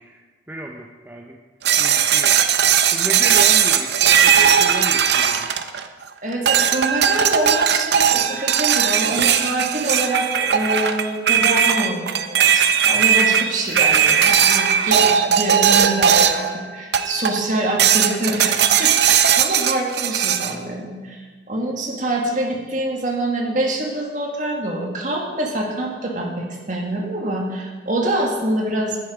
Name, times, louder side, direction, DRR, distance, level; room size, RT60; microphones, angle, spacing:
voice 1, 0.0-1.4 1.8-2.4 2.9-5.5, right 1 dB, 10° right, 0 dB, 0.6 m, -33 dB
sound 1, 1.6-6.0 6.5-16.5 16.9-17.4 17.8-20.5, right 8 dB, 60° right, 0.6 m, -17 dB
voice 2, 6.2-29.0, right 1 dB, 40° right, 0 dB, 1.8 m, -25 dB
10.5 x 9.7 x 5.0 m, 1.4 s
head